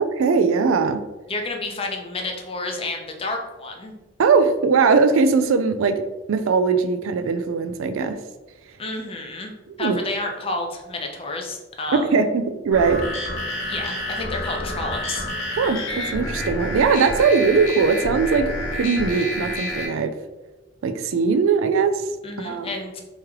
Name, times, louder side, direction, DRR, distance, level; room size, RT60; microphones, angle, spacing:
voice 1, 0.2-1.0 4.2-6.0 6.3-8.2 9.8-10.0 11.9-13.0 15.6-20.1 20.8-22.0 22.4-22.7, right 5 dB, 85° right, 9 dB, 0.4 m, -20 dB
voice 2, 1.3-3.9 8.8-12.2 13.6-15.2 22.2-23.0, left 2 dB, 30° left, 2 dB, 0.5 m, -30 dB
sound 1, 12.7-19.9, left 1 dB, 85° left, 1.2 m, -29 dB
3.1 x 3.1 x 3.6 m, 1.1 s
head